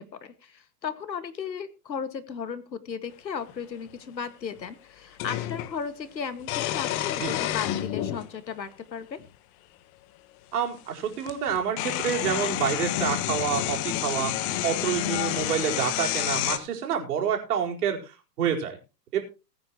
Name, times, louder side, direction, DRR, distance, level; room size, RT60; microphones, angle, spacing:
voice 1, 0.0-9.2, left 6 dB, 85° left, 11 dB, 2.1 m, -35 dB
sound 1, 3.5-3.6 5.2-5.7 6.4-8.3 9.2-9.3 10.8-10.9 11.2-16.6, left 13 dB, 35° left, 1.4 m, -29 dB
voice 2, 10.5-18.8 19.1-19.2, right 8 dB, 65° right, 1 dB, 4.8 m, -28 dB
20.5 x 9.6 x 3.1 m, 0.31 s
hypercardioid pair, 120°, 50 cm